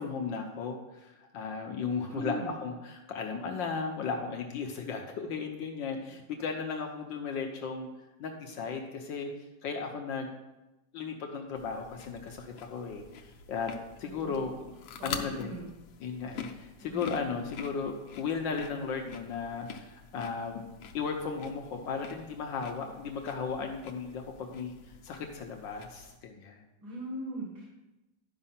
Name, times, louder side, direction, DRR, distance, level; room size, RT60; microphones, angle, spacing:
voice 1, 0.0-7.9 8.2-9.3 9.6-10.3 10.9-13.7 14.0-14.7 15.0-15.6 16.0-20.6 20.9-24.7 25.0-26.6, left 5 dB, 75° left, 3 dB, 1.5 m, -35 dB
voice 2, 2.1-2.6 14.0-14.5 14.9-15.7 16.8-17.1 26.8-27.7, right 1 dB, 90° right, -2 dB, 2.5 m, -39 dB
sound 1, 11.5-26.2, left 6 dB, 90° left, 1.6 m, -46 dB
11.0 x 5.3 x 5.7 m, 1.0 s
omnidirectional pair, 2.1 m